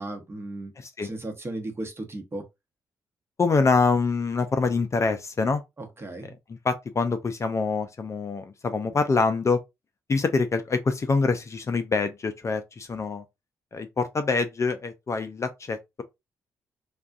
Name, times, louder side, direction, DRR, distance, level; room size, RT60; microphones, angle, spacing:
voice 1, 0.0-0.7 1.0-2.4 5.8-6.3, right 2 dB, 30° right, 0.9 m, -35 dB
voice 2, 0.8-1.1 3.4-5.6 6.6-9.6 10.1-13.2 13.7-16.0, left 4 dB, 40° left, 0.5 m, -25 dB
2.5 x 2.3 x 2.4 m
hypercardioid pair, 45°, 8 cm